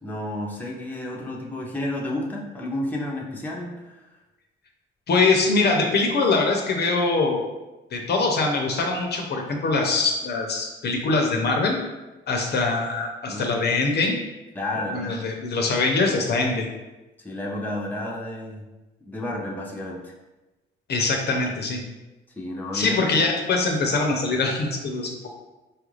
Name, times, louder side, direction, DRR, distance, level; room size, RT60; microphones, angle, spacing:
voice 1, 0.0-4.0 13.2-13.6 14.5-15.2 17.2-18.6 19.1-20.1 22.3-23.0, left 1 dB, 10° left, -2 dB, 0.7 m, -31 dB
voice 2, 5.1-7.4 7.9-11.8 12.3-14.2 14.9-16.7 20.9-21.8 22.7-25.3, left 3 dB, 55° left, 1 dB, 0.7 m, -23 dB
4.4 x 2.4 x 3.2 m, 1.1 s
cardioid pair, 90°, 20 cm